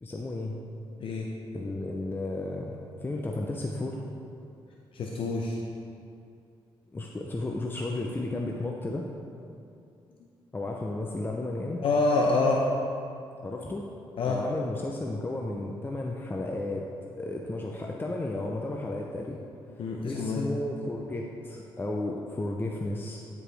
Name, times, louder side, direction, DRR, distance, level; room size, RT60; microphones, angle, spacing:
voice 1, 0.0-0.6 1.5-4.0 6.9-9.1 10.5-11.8 13.4-13.8 14.3-16.9 17.2-19.4 19.7-23.2, left 2 dB, 20° left, 0 dB, 0.6 m, -33 dB
voice 2, 4.9-5.6 11.8-12.6 14.2-14.4 19.8-20.4, left 3 dB, 60° left, -1 dB, 0.6 m, -26 dB
9.8 x 4.8 x 3.4 m, 2.5 s
cardioid pair, 85°, 10 cm